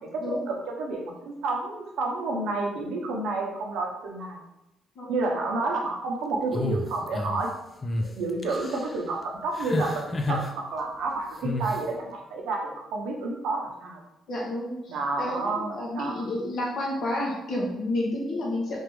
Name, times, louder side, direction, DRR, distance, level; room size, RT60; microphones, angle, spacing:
voice 1, 0.8-4.4 5.1-7.5 8.0-14.0 14.9-16.3, right 3 dB, 80° right, 1 dB, 0.7 m, -30 dB
sound 1, 6.5-7.4 7.8-8.1 8.4-8.9 9.6-10.5 11.4-11.8, left 1 dB, 30° left, 0.5 m, -30 dB
voice 2, 14.3-18.8, left 1 dB, 65° left, -3 dB, 1.2 m, -30 dB
3.6 x 3.2 x 3.0 m, 0.91 s
cardioid pair, 85°, 0 cm